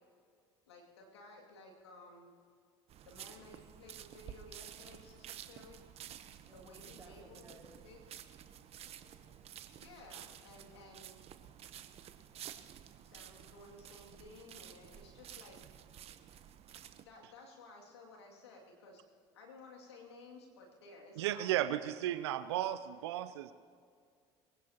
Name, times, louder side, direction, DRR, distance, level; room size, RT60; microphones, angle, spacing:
voice 1, 0.7-2.3 3.0-5.8 6.5-7.4 7.8-8.0 9.7-11.1 13.0-15.6 17.0-19.0 19.3-21.9, left 2 dB, 85° left, -1 dB, 2.4 m, -55 dB
sound 1, 2.9-17.0, right 10 dB, 50° right, 0.9 m, -52 dB
voice 2, 6.5-7.7 8.5-9.5, right 2 dB, 20° right, -1 dB, 5.0 m, -60 dB
voice 3, 21.2-23.5, right 13 dB, 75° right, 12 dB, 0.5 m, -34 dB
23.0 x 16.5 x 2.9 m, 2.2 s
hypercardioid pair, 65°, 14 cm